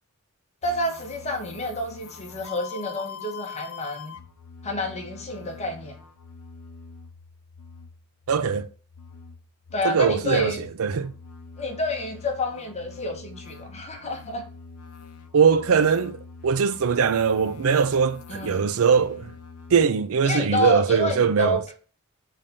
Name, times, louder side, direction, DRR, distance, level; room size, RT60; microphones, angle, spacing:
sound 1, 0.6-19.9, left 6 dB, 80° left, 0.7 m, -44 dB
voice 1, 0.6-4.2 4.6-6.0 9.7-10.6 11.6-14.4 18.3-18.7 20.2-21.7, left 1 dB, 30° left, 1.2 m, -29 dB
voice 2, 8.3-8.7 9.8-10.5 10.8-11.1 15.3-19.3 19.7-21.6, right 6 dB, 70° right, 0.5 m, -21 dB
5.4 x 3.5 x 5.2 m
head